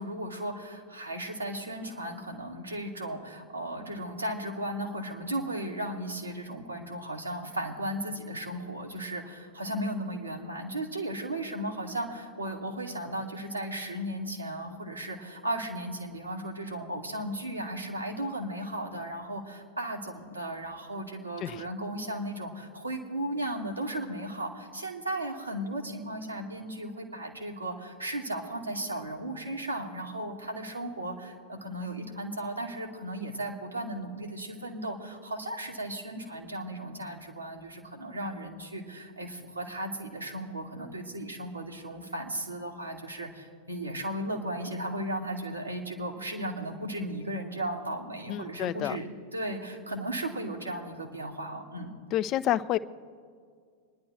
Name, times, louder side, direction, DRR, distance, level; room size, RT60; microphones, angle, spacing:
voice 1, 0.0-51.9, right 1 dB, 85° right, -1 dB, 1.8 m, -35 dB
voice 2, 48.3-49.0 52.1-52.8, left 12 dB, 35° left, 14 dB, 0.4 m, -29 dB
25.5 x 10.5 x 3.2 m, 2.1 s
figure-of-eight pair, 90°, 0 cm